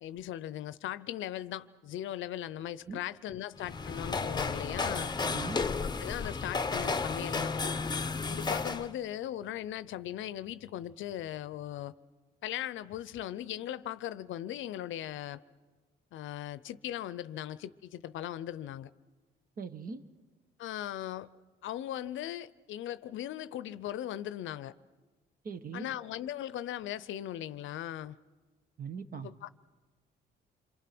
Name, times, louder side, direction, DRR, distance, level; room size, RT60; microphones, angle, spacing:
voice 1, 0.0-5.1 6.0-7.6 8.3-11.9 12.4-15.4 16.1-18.9 20.6-21.3 21.6-24.7 25.7-28.2 29.2-29.5, left 12 dB, 75° left, 0.6 m, -38 dB
sound 1, 3.6-8.9, left 4 dB, 20° left, 0.8 m, -33 dB
voice 2, 5.2-5.6 19.6-20.0 25.4-25.9 28.8-29.3, right 5 dB, 45° right, 1.3 m, -40 dB
28.0 x 23.0 x 6.0 m
cardioid pair, 90°, 20 cm